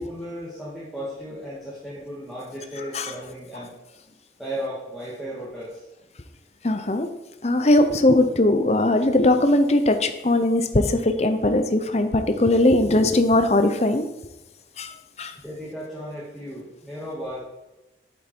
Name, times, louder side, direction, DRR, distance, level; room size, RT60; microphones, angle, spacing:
voice 1, 0.0-3.7 4.4-5.8 15.4-17.4, equal, ahead, -8 dB, 1.9 m, -35 dB
voice 2, 6.6-7.1 7.4-14.1 14.8-15.3, left 1 dB, 35° left, 8 dB, 0.7 m, -20 dB
8.5 x 7.3 x 4.5 m, 0.97 s
head